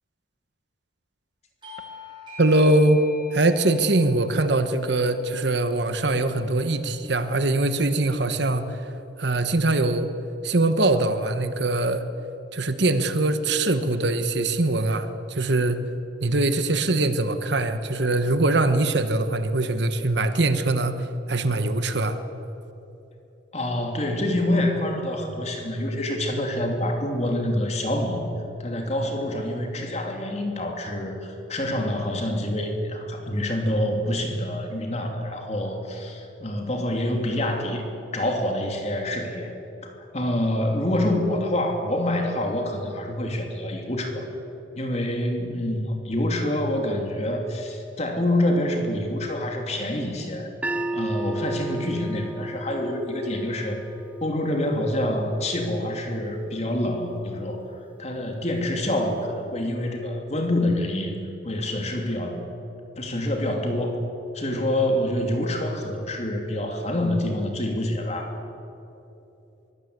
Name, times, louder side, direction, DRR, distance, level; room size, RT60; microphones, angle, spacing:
Bell / Doorbell, 1.6-6.7, left 4 dB, 25° right, 6.5 m, -44 dB
voice 1, 2.4-3.0 3.3-8.8 9.2-10.1 10.4-12.1 12.5-15.8 16.2-22.2, right 2 dB, 65° right, 10 dB, 1.3 m, -22 dB
voice 2, 23.5-28.2 28.6-37.8 38.1-39.5 39.8-44.3 44.7-50.5 50.9-53.8 54.2-57.7 58.0-61.2 61.4-62.4 63.0-64.0 64.3-68.4, left 1 dB, 35° left, 3 dB, 2.9 m, -26 dB
sound 1, 50.6-56.8, right 2 dB, 5° right, 0.5 m, -35 dB
23.0 x 17.0 x 8.2 m, 3.0 s
head